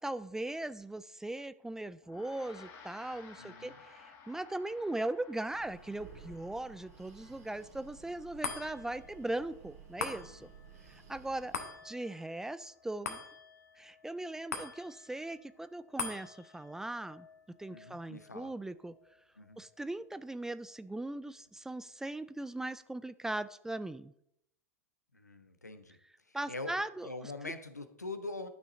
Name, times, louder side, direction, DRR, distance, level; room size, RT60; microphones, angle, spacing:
voice 1, 0.0-10.5 10.9-11.5 11.8-13.2 13.8-17.3 17.6-18.9 19.6-24.1 26.3-27.5, right 2 dB, 5° right, 14 dB, 0.3 m, -39 dB
Gong, 2.0-11.6, left 5 dB, 40° left, 3.0 m, -58 dB
voice 2, 3.4-3.8 17.7-18.5 19.4-19.6 25.1-26.0 26.3-28.5, left 2 dB, 85° left, 9 dB, 0.9 m, -43 dB
Breathing, 5.3-11.9, right 6 dB, 65° right, 2.5 m, -55 dB
sound 1, 8.4-21.0 21.5-21.6, left 5 dB, 70° left, 1.4 m, -46 dB
11.5 x 6.2 x 4.1 m, 0.76 s
figure-of-eight pair, 90°, 9 cm